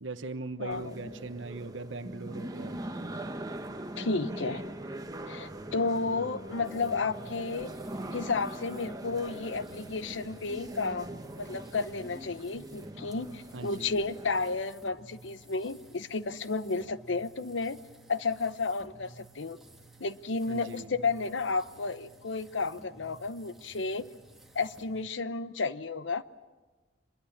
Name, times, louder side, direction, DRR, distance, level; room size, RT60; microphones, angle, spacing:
voice 1, 0.0-2.8 13.5-13.9 20.5-20.9, right 2 dB, 85° right, 10 dB, 1.2 m, -40 dB
voice 2, 0.6-0.9 4.0-4.6 5.3-7.7 8.1-17.8 18.1-19.6 20.0-24.1 24.5-26.5, left 4 dB, 75° left, 14 dB, 0.8 m, -32 dB
sound 1, 0.7-14.6, right 1 dB, 20° right, 1.1 m, -41 dB
sound 2, 6.6-25.0, right 2 dB, ahead, 2.2 m, -54 dB
25.0 x 21.5 x 7.3 m, 1.3 s
head